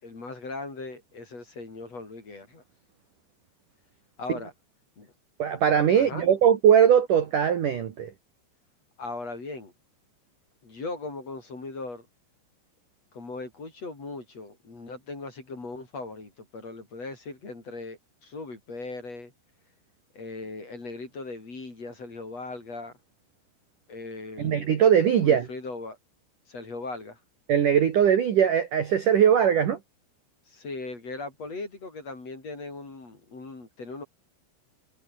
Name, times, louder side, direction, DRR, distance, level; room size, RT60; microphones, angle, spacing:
voice 1, 0.0-2.6 4.2-4.5 5.0-5.1 5.9-6.3 9.0-9.7 10.6-12.1 13.1-19.3 20.1-22.9 23.9-24.8 25.2-26.0 26.5-27.2 30.5-34.0, left 3 dB, 30° left, 6.5 m, -38 dB
voice 2, 5.4-8.1 24.4-25.5 27.5-29.8, right 8 dB, 55° right, 2.6 m, -20 dB
omnidirectional pair, 5.9 m